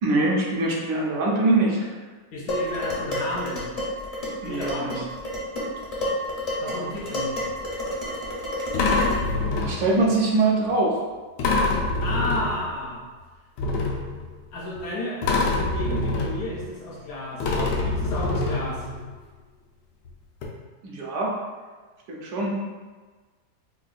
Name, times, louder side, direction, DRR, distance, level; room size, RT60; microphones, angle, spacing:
voice 1, 0.0-1.9 4.4-5.0 9.6-10.9 20.8-21.4 22.1-22.6, right 2 dB, 75° right, -3 dB, 1.2 m, -23 dB
voice 2, 2.3-3.7 4.4-5.0 6.6-7.4 12.0-13.1 14.5-18.9, left 1 dB, 70° left, -3 dB, 1.0 m, -32 dB
Dishes pots and pans, 2.5-9.4, left 1 dB, 45° left, 0.5 m, -30 dB
sound 1, 7.5-7.6 8.7-10.1 11.4-12.9 13.6-14.8 15.2-17.1 17.4-19.1 20.0-20.1 20.4-20.5, left 3 dB, 90° left, 1.2 m, -26 dB
4.5 x 2.2 x 2.4 m, 1.4 s
omnidirectional pair, 1.8 m